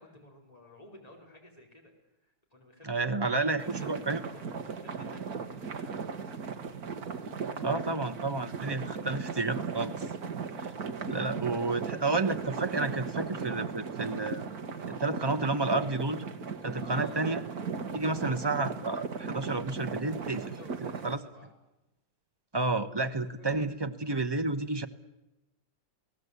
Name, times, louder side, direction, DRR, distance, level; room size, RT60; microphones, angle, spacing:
voice 1, 0.0-1.9 2.2-6.1 16.7-17.3 19.5-19.7 20.0-21.5 23.0-23.5 24.8-24.9, left 1 dB, 20° left, 0 dB, 4.9 m, -53 dB
voice 2, 2.8-4.2 7.6-9.9 10.6-10.7 11.1-14.4 14.9-16.2 16.6-17.4 17.9-20.5 21.0-21.2 22.5-24.9, right 3 dB, 20° right, 9 dB, 0.7 m, -30 dB
sound 1, 3.6-21.2, right 5 dB, 55° right, 1.9 m, -37 dB
28.5 x 18.0 x 8.3 m, 0.98 s
omnidirectional pair, 2.0 m